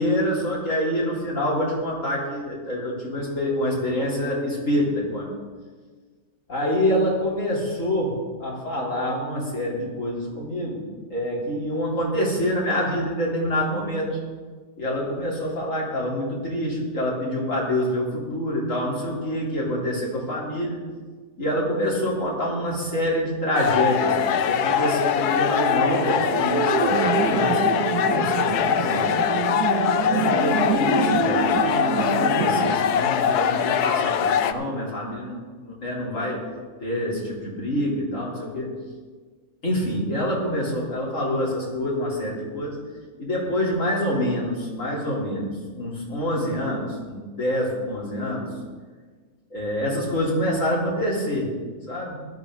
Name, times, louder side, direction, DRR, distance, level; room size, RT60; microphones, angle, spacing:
voice 1, 0.0-5.3 6.5-10.8 11.1-14.2 14.8-20.8 21.4-29.1 30.0-36.5 36.8-38.8 39.6-42.8 43.2-48.6 49.5-51.5 51.9-52.2, equal, 50° left, -5 dB, 3.8 m, -26 dB
sound 1, 23.5-34.5, left 8 dB, 80° left, 1.2 m, -22 dB
sound 2, 25.7-32.7, right 7 dB, 80° right, 1.3 m, -27 dB
16.0 x 12.0 x 3.8 m, 1.5 s
omnidirectional pair, 1.7 m